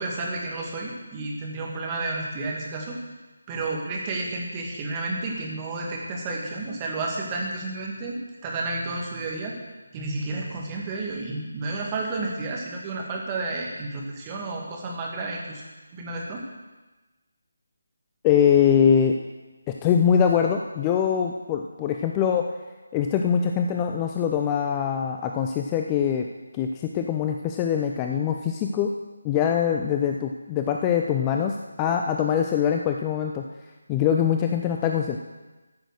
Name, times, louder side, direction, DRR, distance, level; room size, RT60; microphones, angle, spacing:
voice 1, 0.0-3.0 3.5-9.6 9.9-15.6 15.9-16.4, right 2 dB, 20° right, -1 dB, 2.1 m, -31 dB
voice 2, 18.2-19.1 19.8-22.5 22.9-26.3 26.5-28.9 29.2-33.4 33.9-35.2, left 8 dB, 15° left, 3 dB, 0.5 m, -23 dB
14.0 x 6.4 x 6.4 m, 1.2 s
figure-of-eight pair, 155°, 0 cm